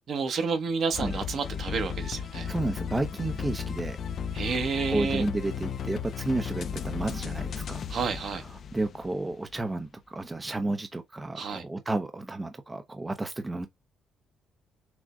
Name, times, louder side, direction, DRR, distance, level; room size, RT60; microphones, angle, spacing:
voice 1, 0.1-2.5 4.3-5.2 7.9-8.4 11.3-11.6, right 5 dB, 60° right, 1.2 m, -30 dB
sound 1, 0.9-9.4, left 7 dB, 60° left, 0.5 m, -35 dB
voice 2, 2.5-4.0 4.9-7.9 8.4-13.7, right 2 dB, 20° right, 0.6 m, -32 dB
6.1 x 2.1 x 3.7 m
cardioid pair, 90°, 0 cm